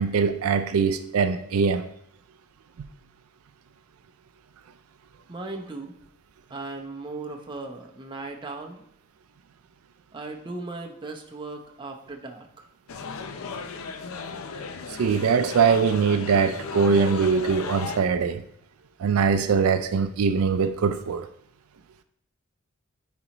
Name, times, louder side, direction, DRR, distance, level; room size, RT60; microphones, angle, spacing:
voice 1, 0.0-1.8 14.9-18.4 19.0-21.3, right 5 dB, 85° right, 0.4 m, -22 dB
voice 2, 5.3-5.9 6.5-8.8 10.1-12.7, right 3 dB, 20° right, 0.7 m, -37 dB
sound 1, 12.9-18.0, left 5 dB, 70° left, 0.5 m, -35 dB
9.8 x 4.2 x 3.0 m
head